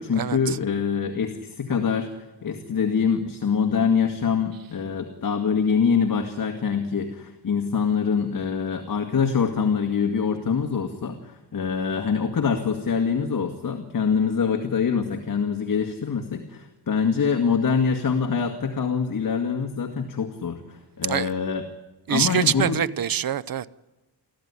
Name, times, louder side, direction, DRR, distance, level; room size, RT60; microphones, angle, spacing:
voice 1, 0.0-21.6 22.1-22.8, left 6 dB, 50° left, 2.0 m, -24 dB
voice 2, 22.1-23.7, right 9 dB, 55° right, 0.8 m, -24 dB
25.0 x 15.5 x 9.8 m
cardioid pair, 95°, 43 cm